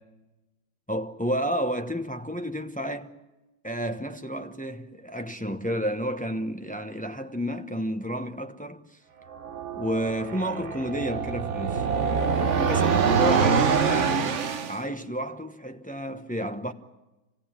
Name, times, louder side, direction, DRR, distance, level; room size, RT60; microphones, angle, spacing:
voice 1, 0.9-3.1 3.6-8.8 9.7-11.9 12.6-16.7, equal, 10° left, 0.6 m, -31 dB
sound 1, 9.3-14.8, right 6 dB, 50° right, 1.1 m, -25 dB
26.0 x 18.0 x 8.9 m
omnidirectional pair, 1.9 m